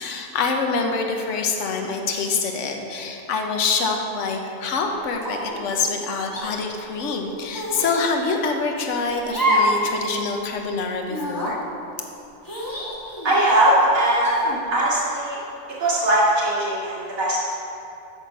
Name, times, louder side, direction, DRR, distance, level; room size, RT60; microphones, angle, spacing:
voice 1, 0.0-11.6, left 4 dB, 65° left, 2 dB, 1.2 m, -25 dB
sound 1, 5.2-5.6 6.3-6.5 7.5-7.9 9.3-9.8 10.1-10.2 11.1-11.5 12.4-13.4 14.2-14.6, equal, 15° left, 1.4 m, -25 dB
voice 2, 13.2-14.4 14.7-15.4 15.8-17.5, right 1 dB, 80° right, -7 dB, 2.4 m, -20 dB
9.1 x 5.8 x 5.8 m, 2.7 s
omnidirectional pair, 1.4 m